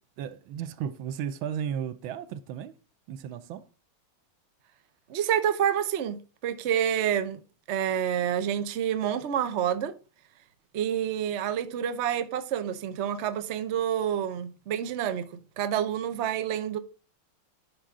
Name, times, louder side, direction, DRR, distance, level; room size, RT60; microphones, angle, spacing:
voice 1, 0.2-2.8 3.1-3.7, right 8 dB, 75° right, 1.4 m, -34 dB
voice 2, 5.1-7.4 7.7-9.9 10.7-15.3 15.6-16.8, right 9 dB, 90° right, 0.6 m, -28 dB
10.0 x 5.6 x 3.6 m
omnidirectional pair, 2.4 m